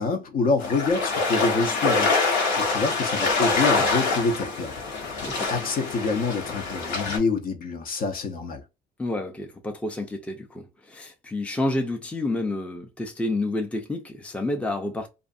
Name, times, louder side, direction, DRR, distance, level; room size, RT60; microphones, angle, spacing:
voice 1, 0.0-4.7 5.0-8.6, left 4 dB, 55° left, 0.7 m, -27 dB
sound 1, 0.6-7.2, left 3 dB, 80° left, 1.1 m, -25 dB
voice 2, 9.0-15.1, left 2 dB, 5° left, 0.5 m, -29 dB
2.5 x 2.5 x 2.5 m
cardioid pair, 110°, 17 cm